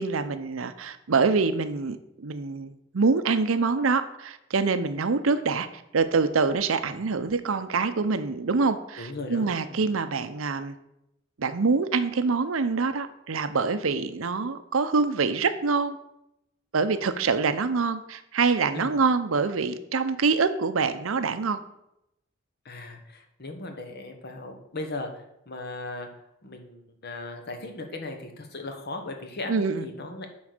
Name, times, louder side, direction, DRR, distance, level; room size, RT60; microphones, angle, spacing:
voice 1, 0.0-5.7 5.9-10.8 11.4-16.0 16.7-21.6 29.5-29.8, right 4 dB, 80° right, 11 dB, 0.7 m, -25 dB
voice 2, 9.0-9.8 18.7-18.9 22.6-26.1 26.4-30.3, left 2 dB, 55° left, 5 dB, 1.3 m, -38 dB
8.6 x 4.0 x 6.6 m, 0.83 s
head